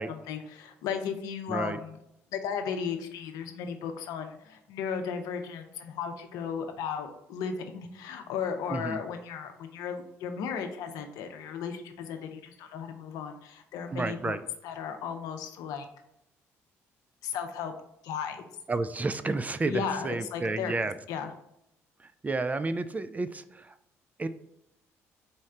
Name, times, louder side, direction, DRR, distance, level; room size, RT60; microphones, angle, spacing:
voice 1, 0.0-2.0 2.3-14.4 14.6-15.9 17.2-17.7 18.0-18.5 19.6-21.3, left 7 dB, 75° left, 6 dB, 0.6 m, -35 dB
voice 2, 8.7-9.0 13.9-14.4 18.7-20.9 22.2-23.7 24.2-24.3, right 3 dB, 25° right, 12 dB, 0.3 m, -31 dB
4.2 x 3.2 x 3.7 m, 0.81 s
hypercardioid pair, 60°, 6 cm